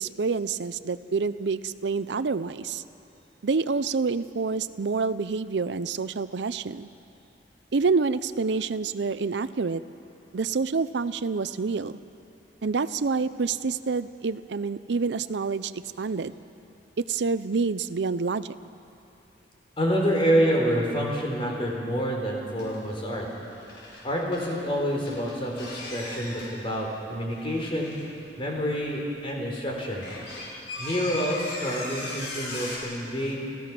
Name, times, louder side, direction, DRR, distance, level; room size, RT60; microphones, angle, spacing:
voice 1, 0.0-2.8 3.4-6.9 7.7-9.8 10.3-11.9 12.6-16.3 17.0-18.6, right 4 dB, 75° right, 13 dB, 0.5 m, -27 dB
voice 2, 19.8-23.3 24.0-28.0 28.4-30.0 30.8-33.4, equal, 30° left, -1 dB, 3.7 m, -27 dB
sound 1, 22.6-22.9 23.2-24.6 25.1-26.5 27.1-28.3 28.9-29.0 29.5-32.8, left 2 dB, 85° left, 6.1 m, -38 dB
30.0 x 14.5 x 6.0 m, 2.9 s
head